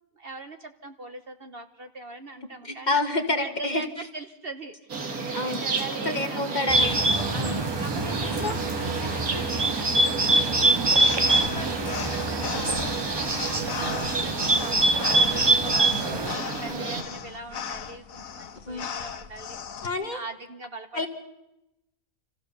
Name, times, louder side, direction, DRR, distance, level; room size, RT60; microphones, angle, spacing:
voice 1, 0.1-3.0 3.4-3.9 4.1-6.8 7.3-10.4 11.2-19.6 20.0-21.1, right 3 dB, 45° right, 7 dB, 1.1 m, -41 dB
voice 2, 2.6-3.8 5.3-5.7 6.0-7.1 7.4-7.7 8.4-8.6 10.9-11.1 15.6-15.8 16.7-16.8 18.7-18.9 19.8-20.2 20.9-21.1, left 2 dB, 30° left, 7 dB, 1.5 m, -28 dB
sound 1, 4.9-17.0, right 4 dB, 85° right, 2.5 m, -32 dB
Bird, 6.7-16.3, right 2 dB, 20° right, 0.8 m, -24 dB
sound 2, 10.6-19.9, left 7 dB, 70° left, 1.5 m, -37 dB
26.5 x 15.0 x 6.8 m, 0.95 s
omnidirectional pair, 1.5 m